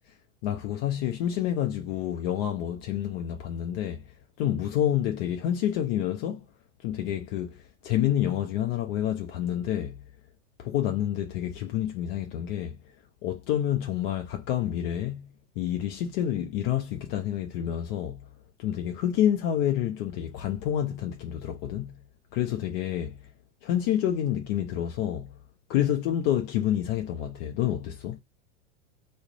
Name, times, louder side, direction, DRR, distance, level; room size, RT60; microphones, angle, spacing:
voice 1, 0.4-4.0 4.4-6.5 6.8-10.0 10.6-12.8 13.2-15.3 15.6-18.2 18.6-22.0 22.3-23.3 23.6-25.3 25.7-28.2, left 11 dB, 50° left, 0.5 m, -28 dB
2.3 x 2.1 x 2.8 m
hypercardioid pair, 100°, 37 cm